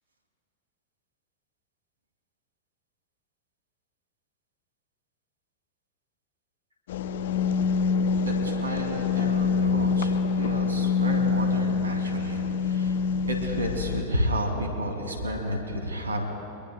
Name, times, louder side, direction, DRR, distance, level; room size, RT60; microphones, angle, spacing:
sound 1, 6.9-14.0, left 5 dB, 65° left, 0.7 m, -25 dB
voice 1, 8.2-13.0 13.3-16.2, equal, 90° right, 2 dB, 2.7 m, -31 dB
24.0 x 21.5 x 2.3 m, 2.7 s
hypercardioid pair, 95°, 0 cm